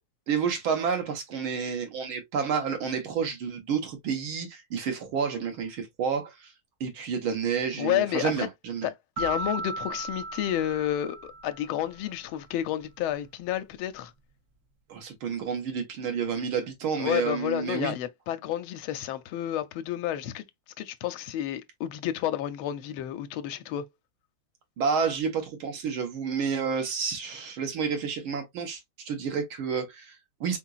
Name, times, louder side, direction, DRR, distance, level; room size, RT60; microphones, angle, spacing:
voice 1, 0.3-6.5 6.8-8.9 14.9-17.9 24.8-30.6, right 6 dB, 75° right, 1.9 m, -30 dB
voice 2, 7.8-8.5 8.8-8.9 9.2-14.1 17.0-20.4 20.8-23.9, left 12 dB, 80° left, 1.4 m, -30 dB
sound 1, 9.2-11.9, right 3 dB, 60° right, 1.0 m, -36 dB
4.4 x 3.8 x 2.3 m
omnidirectional pair, 2.3 m